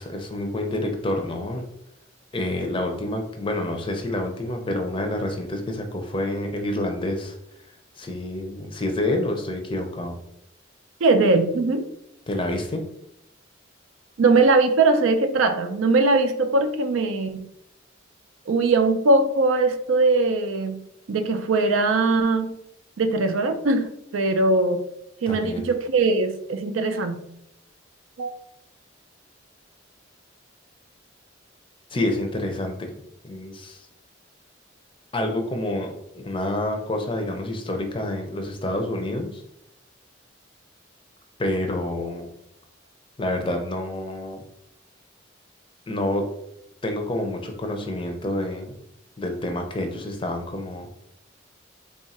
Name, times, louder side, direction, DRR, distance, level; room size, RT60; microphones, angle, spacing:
voice 1, 0.0-1.7 2.3-7.4 8.0-10.2 12.3-12.8 25.3-25.7 31.9-32.9 33.2-33.9 35.1-39.4 41.4-42.3 43.2-44.4 45.9-46.3 46.8-48.7 49.2-50.9, left 1 dB, 25° left, 4 dB, 0.5 m, -28 dB
voice 2, 11.0-11.9 14.2-17.5 18.5-22.5 23.0-24.8 25.2-27.2 28.2-28.3, right 3 dB, 85° right, 8 dB, 0.4 m, -21 dB
3.5 x 2.4 x 4.1 m, 0.78 s
head